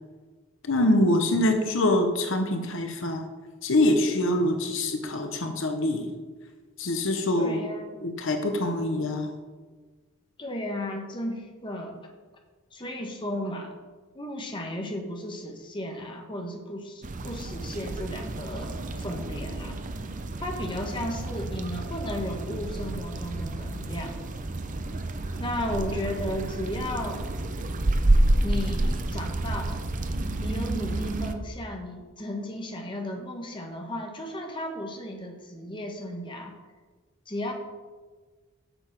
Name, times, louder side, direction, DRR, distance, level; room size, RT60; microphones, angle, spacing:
voice 1, 0.6-3.3 3.6-6.1 6.8-7.6 8.0-9.3, left 1 dB, 60° left, 5 dB, 0.9 m, -24 dB
voice 2, 7.4-8.0 10.4-12.1 12.7-13.7 14.1-19.8 20.4-24.1 25.3-27.2 28.4-29.8 30.4-36.5 37.3-37.5, left 1 dB, 25° left, 2 dB, 1.2 m, -34 dB
sound 1, 17.0-31.3, right 1 dB, 35° right, 0.6 m, -29 dB
7.9 x 7.0 x 5.9 m, 1.4 s
head